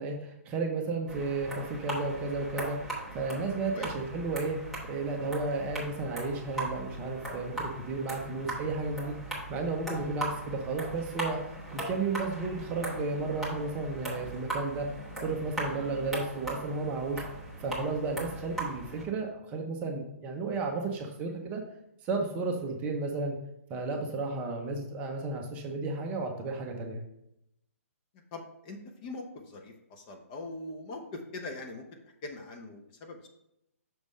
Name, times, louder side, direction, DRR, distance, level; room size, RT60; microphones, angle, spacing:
voice 1, 0.0-9.2 9.5-11.4 11.7-14.9 15.2-17.2 17.6-21.6 22.0-23.4 23.7-27.0, right 3 dB, 20° right, 2 dB, 0.7 m, -33 dB
sound 1, 1.1-19.0, right 1 dB, ahead, 1.5 m, -39 dB
voice 2, 28.1-33.3, left 2 dB, 30° left, 3 dB, 0.8 m, -42 dB
6.2 x 3.4 x 5.3 m, 0.81 s
hypercardioid pair, 160°, 8 cm